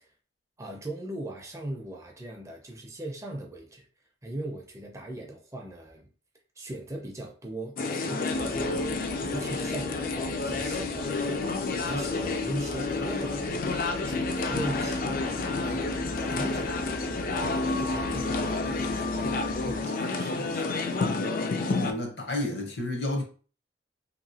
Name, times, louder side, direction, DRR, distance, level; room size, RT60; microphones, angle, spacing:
voice 1, 0.6-3.9 4.2-6.1 6.6-8.8 9.2-11.2 11.8-13.5 14.1-15.8 16.1-17.1 17.4-20.7, right 1 dB, 15° right, 0.4 m, -39 dB
sound 1, 7.8-21.9, left 3 dB, 50° left, 0.4 m, -29 dB
Dog, 8.3-19.8, right 2 dB, 85° right, 0.6 m, -43 dB
voice 2, 21.6-23.2, left 1 dB, 65° left, 0.8 m, -31 dB
2.9 x 2.6 x 2.7 m
head